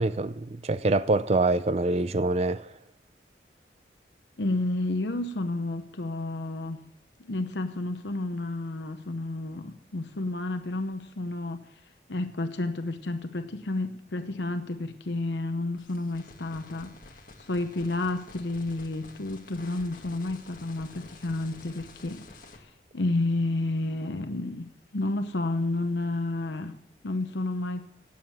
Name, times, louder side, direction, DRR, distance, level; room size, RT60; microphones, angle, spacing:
voice 1, 0.0-2.7, right 2 dB, 35° right, 0.4 m, -25 dB
voice 2, 4.4-6.9 7.2-11.7 12.1-26.8 27.0-27.9, left 2 dB, 85° left, 0.9 m, -31 dB
sound 1, 15.8-22.6, left 2 dB, 50° left, 1.9 m, -50 dB
17.0 x 7.4 x 7.4 m
head